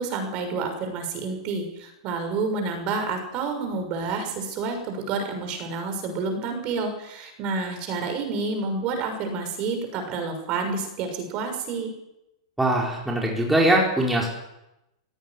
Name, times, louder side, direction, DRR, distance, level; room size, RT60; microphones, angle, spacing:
voice 1, 0.0-11.9, right 4 dB, 40° right, 6 dB, 6.4 m, -29 dB
voice 2, 12.6-14.3, right 1 dB, 5° right, -2 dB, 4.7 m, -21 dB
17.5 x 16.5 x 9.7 m, 0.89 s
hypercardioid pair, 135°, 3 cm